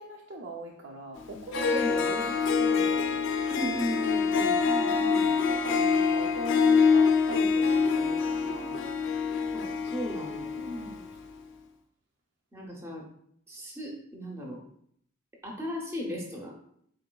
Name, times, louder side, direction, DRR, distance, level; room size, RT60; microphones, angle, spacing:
voice 1, 0.0-3.3 4.6-8.9 10.5-11.1, right 1 dB, 60° right, -2 dB, 0.5 m, -41 dB
Harp, 1.2-1.3 1.5-11.0, left 5 dB, 60° left, 0.4 m, -25 dB
voice 2, 3.5-4.6 9.5-9.6 9.9-10.7 12.5-13.0 13.5-14.6 15.4-16.6, equal, 10° right, -1 dB, 0.5 m, -36 dB
3.9 x 3.8 x 2.2 m, 0.68 s
head